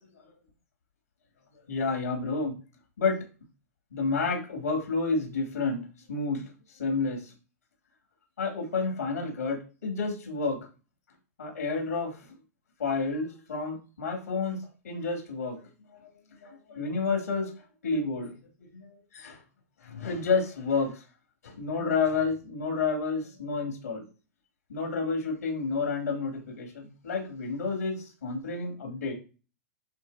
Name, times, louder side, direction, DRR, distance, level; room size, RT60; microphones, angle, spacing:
voice 1, 1.7-2.5 3.0-3.2 3.9-6.5 6.7-7.3 8.4-10.6 11.4-12.3 12.8-14.6 14.8-16.1 16.4-17.5 17.8-18.4 18.7-19.4 19.8-21.0 21.4-24.0 24.7-29.1, left 4 dB, 90° left, 2 dB, 3.5 m, -30 dB
11.0 x 4.1 x 3.1 m, 0.33 s
hypercardioid pair, 110°, 8 cm